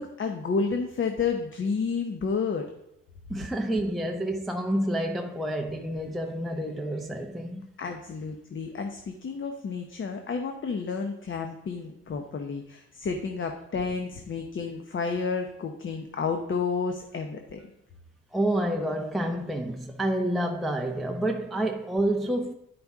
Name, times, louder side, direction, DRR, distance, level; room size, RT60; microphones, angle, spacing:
voice 1, 0.0-2.6 7.8-17.6, left 5 dB, 40° left, 0.9 m, -31 dB
voice 2, 3.3-7.7 18.3-22.5, right 1 dB, ahead, 0.6 m, -28 dB
10.5 x 5.2 x 3.6 m
cardioid pair, 90°, 30 cm